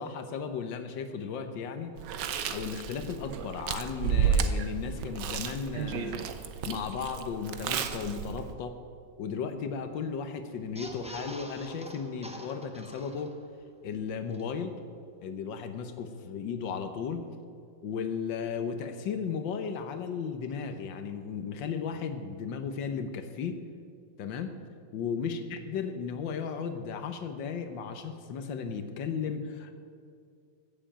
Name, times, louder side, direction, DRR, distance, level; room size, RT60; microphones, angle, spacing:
voice 1, 0.0-1.9 2.5-6.3 6.6-8.8 9.2-13.4 13.8-14.7 15.2-17.2 17.8-23.6 24.2-24.6 24.9-29.7, left 6 dB, 85° left, 8 dB, 1.7 m, -35 dB
Chewing mastication, 2.0-8.5, right 7 dB, 75° right, 1.4 m, -32 dB
sound 1, 10.6-13.6 14.0-14.1 14.3-14.4, right 1 dB, 5° right, 0.7 m, -45 dB
15.0 x 7.6 x 8.8 m, 2.2 s
omnidirectional pair, 2.0 m